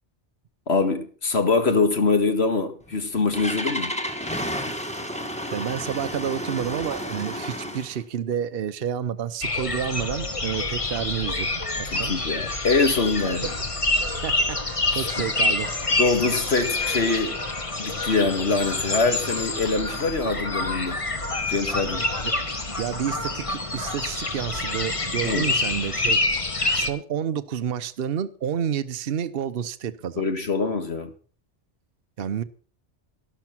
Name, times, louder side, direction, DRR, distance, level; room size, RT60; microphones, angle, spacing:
voice 1, 0.7-4.0 11.8-13.5 14.9-15.1 15.9-17.4 17.8-21.0 21.5-22.1 25.2-25.5 30.2-31.1, left 3 dB, 65° left, 2.1 m, -24 dB
Engine starting, 2.8-8.0, equal, 5° left, 1.7 m, -31 dB
voice 2, 5.5-12.1 13.2-13.5 14.2-15.7 22.2-22.3 22.7-26.2 26.7-30.5 32.2-32.4, right 8 dB, 60° right, 0.9 m, -30 dB
sound 1, 9.4-26.9, left 2 dB, 30° left, 1.3 m, -27 dB
12.0 x 12.0 x 6.0 m
omnidirectional pair, 1.2 m